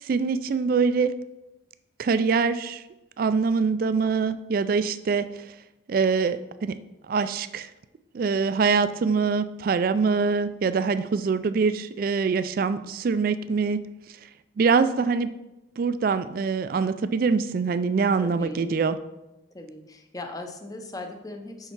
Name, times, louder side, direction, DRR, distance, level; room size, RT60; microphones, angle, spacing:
voice 1, 0.0-1.1 2.0-2.8 3.2-5.3 5.9-6.8 7.1-7.7 8.1-13.8 14.6-15.3 15.8-19.0, right 5 dB, 50° right, 13 dB, 0.3 m, -24 dB
voice 2, 18.2-18.7 19.5-21.7, left 2 dB, 20° left, 5 dB, 0.7 m, -39 dB
5.7 x 5.4 x 4.6 m, 0.97 s
head